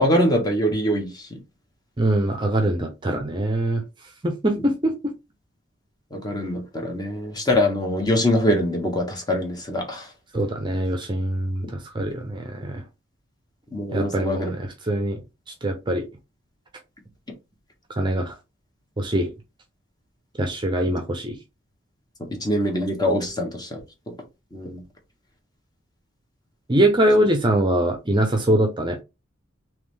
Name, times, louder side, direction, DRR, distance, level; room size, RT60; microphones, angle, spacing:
voice 1, 0.0-1.4 6.1-10.1 13.7-14.5 22.4-23.8 24.5-24.8, left 1 dB, 20° left, 1.1 m, -23 dB
voice 2, 2.0-3.8 4.2-4.9 10.3-12.8 13.9-15.2 15.6-16.1 18.0-18.3 19.0-19.3 20.4-21.4 26.7-29.0, right 1 dB, 25° right, 0.6 m, -23 dB
3.7 x 3.0 x 3.2 m
head